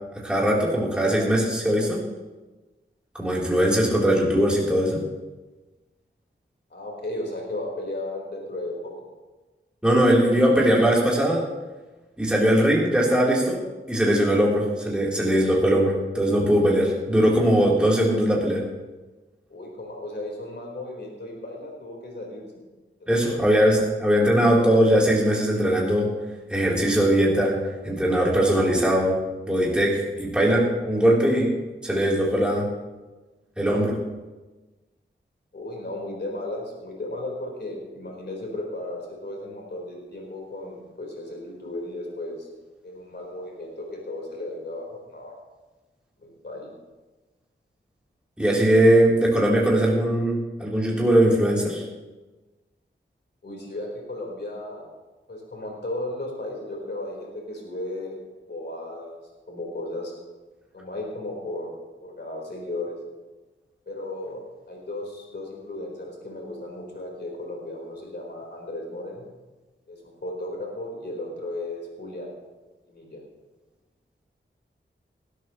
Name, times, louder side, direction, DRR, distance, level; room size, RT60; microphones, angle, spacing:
voice 1, 0.2-2.0 3.1-5.0 9.8-11.4 12.2-13.6 13.9-18.6 23.1-26.1 26.5-27.6 27.8-29.2 29.5-31.5 31.8-32.7 33.6-34.0 48.4-51.8, right 1 dB, 5° right, -5 dB, 3.5 m, -20 dB
voice 2, 6.7-8.9 19.5-22.4 23.0-23.4 35.5-42.5 42.8-45.3 46.2-46.7 53.4-54.9 55.3-58.2 58.5-59.2 59.5-60.1 60.7-61.7 62.0-62.9 63.9-69.2 69.9-72.3 72.9-73.2, left 1 dB, 55° left, -1 dB, 4.2 m, -35 dB
19.0 x 13.0 x 3.1 m, 1.2 s
wide cardioid pair, 95°, 21 cm